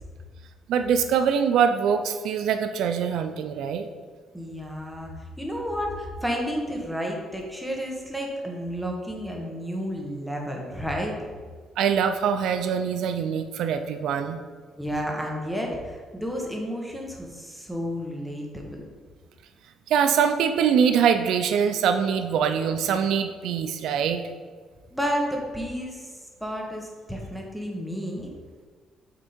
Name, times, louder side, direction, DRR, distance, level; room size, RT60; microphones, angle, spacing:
voice 1, 0.7-3.9 11.8-14.4 19.9-24.2, right 7 dB, 75° right, 8 dB, 0.4 m, -23 dB
voice 2, 4.3-11.2 14.8-18.8 24.9-28.3, equal, ahead, -1 dB, 1.0 m, -31 dB
6.5 x 3.6 x 4.3 m, 1.6 s
cardioid pair, 130°, 0 cm